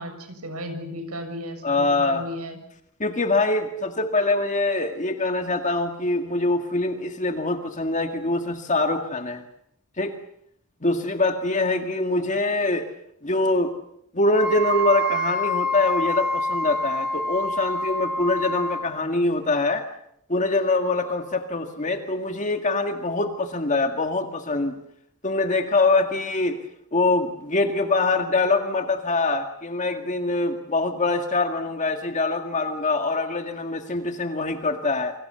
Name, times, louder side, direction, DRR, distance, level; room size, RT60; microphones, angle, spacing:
voice 1, 0.0-2.6, equal, 80° right, 7 dB, 7.0 m, -35 dB
voice 2, 1.6-2.3 3.0-9.4 10.0-10.1 10.8-12.9 13.2-13.7 14.1-19.9 20.3-24.8 25.2-26.6 26.9-35.1, left 2 dB, 35° left, 6 dB, 2.0 m, -24 dB
Wind instrument woodwind instrument, 14.4-18.9, equal, 5° right, 3.9 m, -26 dB
28.5 x 26.0 x 6.9 m, 0.74 s
head